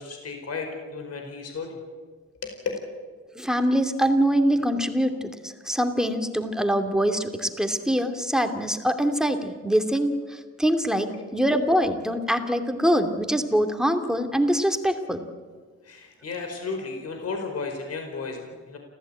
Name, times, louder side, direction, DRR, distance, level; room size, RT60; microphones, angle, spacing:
voice 1, 0.0-1.8 2.4-2.6 11.1-11.4 15.8-18.8, left 4 dB, 55° left, 4 dB, 4.9 m, -34 dB
voice 2, 3.3-15.2, equal, ahead, 6 dB, 2.5 m, -24 dB
29.0 x 15.0 x 9.0 m, 1.5 s
cardioid pair, 90°, 30 cm